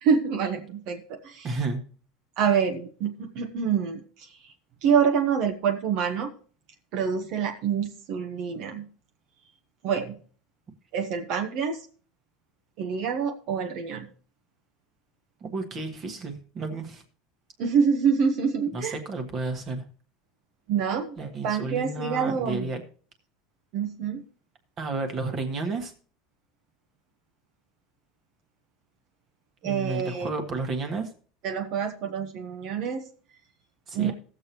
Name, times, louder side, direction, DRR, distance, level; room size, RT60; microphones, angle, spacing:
voice 1, 0.0-1.5 2.4-4.5 4.8-6.3 6.9-8.9 9.8-10.2 10.9-11.8 12.8-14.1 17.6-19.0 20.7-21.2 21.4-22.7 23.7-24.2 29.6-30.3 31.4-33.1 33.9-34.1, right 6 dB, 45° right, 5 dB, 1.0 m, -26 dB
voice 2, 1.4-1.8 15.4-17.0 18.7-19.8 21.2-22.8 24.8-25.9 29.6-31.1 33.9-34.1, right 3 dB, 30° right, 5 dB, 1.5 m, -32 dB
17.5 x 6.9 x 3.0 m, 0.42 s
supercardioid pair, 165°, 0 cm